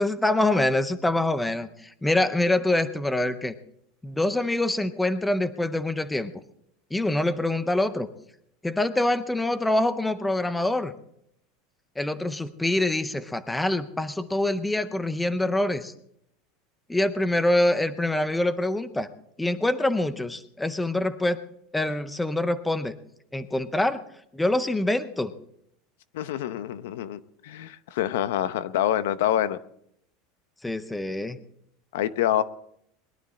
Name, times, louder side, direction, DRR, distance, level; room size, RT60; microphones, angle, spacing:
voice 1, 0.0-3.5 4.0-6.3 6.9-8.1 8.6-10.9 12.0-15.9 16.9-19.1 19.4-21.4 21.7-22.9 23.3-24.0 24.3-25.3 30.6-31.4, left 1 dB, 5° left, 12 dB, 0.6 m, -25 dB
voice 2, 26.1-29.6 31.9-32.4, left 11 dB, 75° left, 14 dB, 0.8 m, -26 dB
21.5 x 12.0 x 4.2 m, 0.72 s
supercardioid pair, 175°, 0 cm